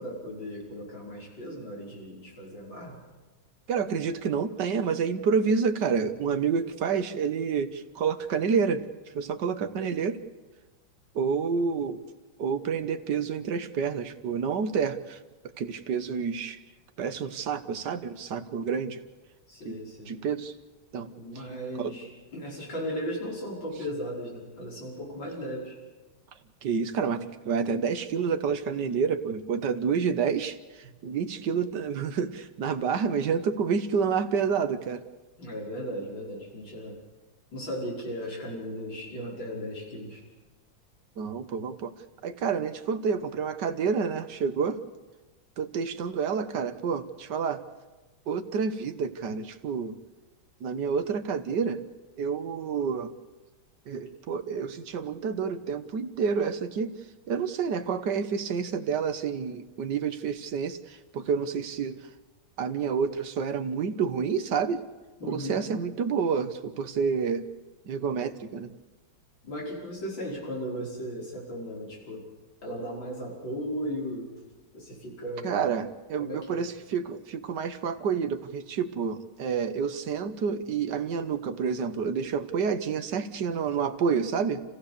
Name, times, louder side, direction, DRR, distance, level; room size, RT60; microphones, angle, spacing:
voice 1, 0.0-3.0 19.5-20.2 21.1-25.7 30.8-30.9 35.4-37.0 37.5-40.2 65.2-65.6 69.4-72.2 72.6-74.3 74.7-75.6 76.2-76.6, equal, 60° left, -3 dB, 6.1 m, -36 dB
voice 2, 3.7-8.8 9.1-10.2 11.1-12.0 12.4-16.6 17.0-19.0 19.6-20.5 20.9-21.1 21.5-21.9 26.6-35.0 41.2-41.9 42.2-44.8 45.6-47.6 48.3-50.0 50.6-51.8 52.2-53.1 53.9-56.9 57.3-62.0 62.6-64.8 65.2-67.5 67.8-68.7 75.4-84.6, right 6 dB, 60° right, 9 dB, 1.6 m, -29 dB
29.5 x 15.5 x 6.8 m, 1.2 s
omnidirectional pair, 2.3 m